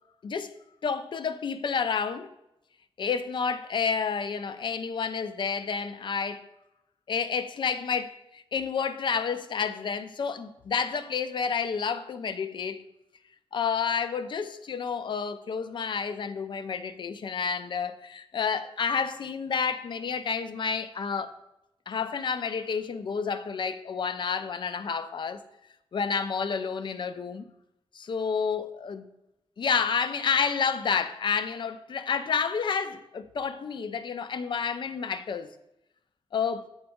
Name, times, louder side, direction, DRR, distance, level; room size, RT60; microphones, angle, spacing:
voice 1, 0.2-0.5 0.8-2.3 3.0-6.4 7.1-12.9 13.5-21.3 21.9-25.4 25.9-27.5 27.9-29.1 29.6-35.5 36.3-36.7, left 6 dB, 55° left, 0.4 m, -30 dB
7.7 x 4.0 x 3.5 m
wide cardioid pair, 165°, 10 cm